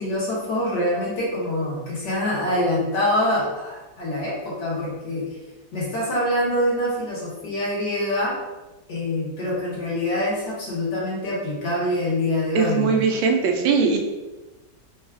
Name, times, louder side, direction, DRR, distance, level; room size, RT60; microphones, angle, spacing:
voice 1, 0.0-5.4 5.7-8.4 8.9-13.0, left 1 dB, 60° left, -5 dB, 1.9 m, -25 dB
voice 2, 12.5-14.0, right 5 dB, 90° right, 2 dB, 1.5 m, -20 dB
4.4 x 2.4 x 4.5 m, 1.1 s
omnidirectional pair, 2.1 m